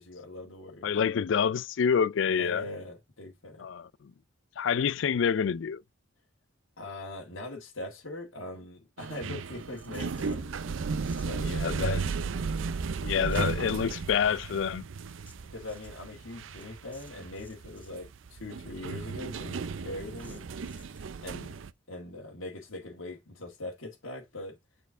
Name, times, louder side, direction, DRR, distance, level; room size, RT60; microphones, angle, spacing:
voice 1, 0.0-0.9 2.3-3.7 6.8-10.5 11.2-11.5 15.4-20.5 21.2-21.5 21.9-24.6, left 2 dB, 85° left, 1.8 m, -41 dB
voice 2, 0.8-2.6 3.6-4.1 4.6-5.8 11.4-12.1 13.0-14.8, left 7 dB, 65° left, 0.4 m, -27 dB
sound 1, 9.0-21.7, right 5 dB, 75° right, 0.5 m, -35 dB
sound 2, 9.4-10.5 11.0-11.3 11.9-12.7 13.0-13.6 14.2-18.0 18.3-18.4 18.6-18.7 19.0-19.1 19.5-19.6 20.1-21.1, left 2 dB, 10° left, 1.5 m, -59 dB
7.1 x 4.4 x 3.7 m
head